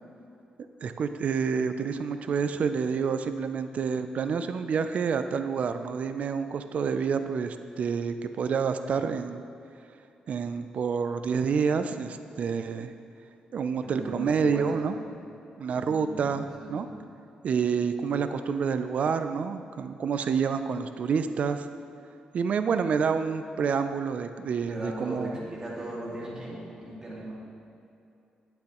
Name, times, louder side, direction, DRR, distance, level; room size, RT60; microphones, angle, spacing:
voice 1, 0.8-9.4 10.3-12.9 13.5-14.9 15.6-16.9 17.4-21.7 22.3-25.4, right 6 dB, 55° right, 9 dB, 0.4 m, -28 dB
voice 2, 13.8-15.0 15.7-16.9 24.7-27.3, right 1 dB, 25° right, -5 dB, 2.0 m, -38 dB
9.8 x 8.7 x 3.0 m, 2.7 s
cardioid pair, 115°, 3 cm